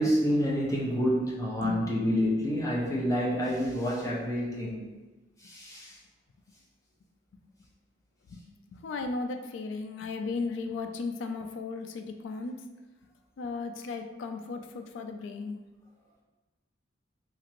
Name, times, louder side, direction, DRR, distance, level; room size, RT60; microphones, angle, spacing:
voice 1, 0.0-4.9 5.4-5.9, equal, 15° left, -5 dB, 0.6 m, -28 dB
voice 2, 8.7-12.5 13.4-15.6, left 3 dB, 75° left, 6 dB, 0.3 m, -35 dB
2.9 x 2.5 x 2.9 m, 1.2 s
head